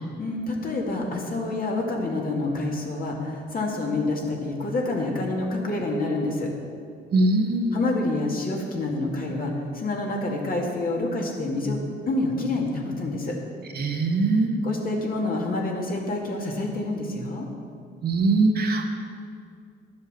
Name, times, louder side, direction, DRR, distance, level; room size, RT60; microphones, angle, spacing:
voice 1, 0.2-6.5 7.7-11.8 12.0-13.3 14.6-17.5, left 2 dB, 45° left, -1 dB, 2.3 m, -27 dB
voice 2, 7.1-7.8 13.7-14.6 18.0-18.9, right 2 dB, 55° right, 2 dB, 1.4 m, -22 dB
11.0 x 7.2 x 6.8 m, 2.3 s
cardioid pair, 90°, 20 cm